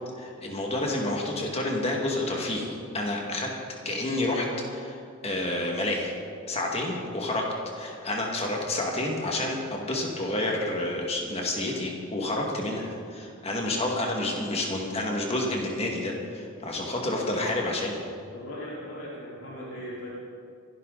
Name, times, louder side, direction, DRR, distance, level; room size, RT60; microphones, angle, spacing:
voice 1, 0.2-3.5 3.8-5.0 5.2-6.1 6.5-7.4 7.8-18.0, left 1 dB, 30° left, 0 dB, 2.2 m, -29 dB
voice 2, 18.3-20.1, equal, 75° left, -7 dB, 4.7 m, -39 dB
26.0 x 11.5 x 4.2 m, 2.4 s
head